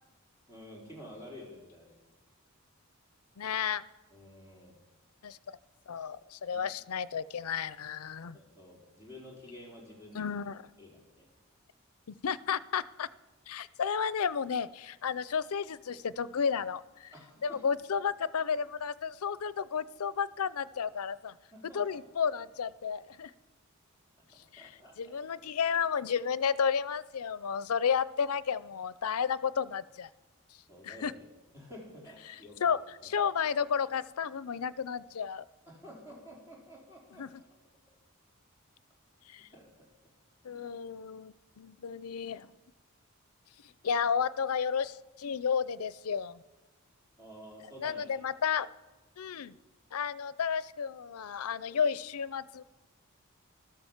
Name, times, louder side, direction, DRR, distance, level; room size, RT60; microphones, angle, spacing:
voice 1, 0.5-2.0 4.1-4.8 6.5-6.6 8.3-10.3 10.8-11.3 17.1-17.6 21.5-21.8 24.2-25.2 30.7-31.2 31.5-32.8 35.7-37.3 39.5-39.9 40.5-40.7 47.2-48.2, equal, 15° right, -4 dB, 4.4 m, -50 dB
voice 2, 3.4-3.8 5.2-5.6 5.9-8.4 10.1-10.7 12.1-13.1 13.5-17.1 17.4-21.3 21.7-23.3 24.5-30.1 30.8-31.1 32.3-35.4 37.2-37.4 39.3-39.5 40.4-42.5 43.8-46.4 47.8-48.7 49.2-49.5 49.9-52.6, left 6 dB, 90° left, 17 dB, 0.5 m, -32 dB
14.5 x 12.5 x 7.3 m, 1.1 s
head